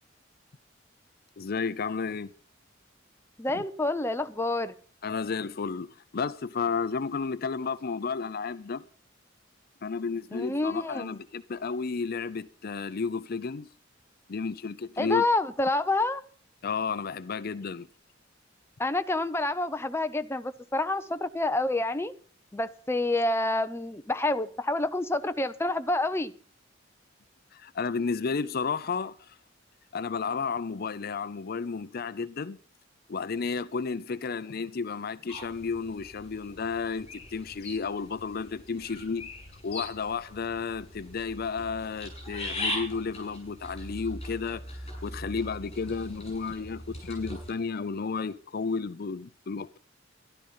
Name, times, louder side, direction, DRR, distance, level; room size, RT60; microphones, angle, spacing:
voice 1, 1.4-2.3 3.5-3.6 5.0-8.8 9.8-13.7 14.3-15.2 16.6-17.9 27.5-29.4 29.9-32.6 33.1-39.3 39.6-49.8, left 5 dB, 50° left, 0.5 m, -32 dB
voice 2, 3.4-4.7 10.3-11.2 15.0-16.2 18.8-22.1 22.5-26.3, left 2 dB, 15° left, 0.6 m, -28 dB
sound 1, 35.3-47.5, left 1 dB, 30° left, 7.9 m, -40 dB
12.5 x 12.0 x 5.6 m
head